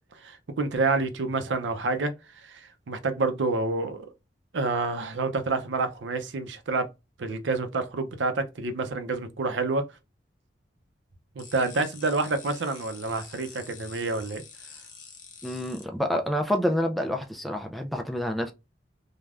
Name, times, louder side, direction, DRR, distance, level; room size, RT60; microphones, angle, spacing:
voice 1, 0.2-2.1 2.4-4.1 4.5-6.9 7.2-9.8 11.4-14.4, right 3 dB, 80° right, 0.5 m, -28 dB
sound 1, 11.4-15.8, left 6 dB, 45° left, 0.6 m, -47 dB
voice 2, 15.4-18.5, equal, ahead, 0.3 m, -28 dB
3.3 x 2.2 x 2.4 m
head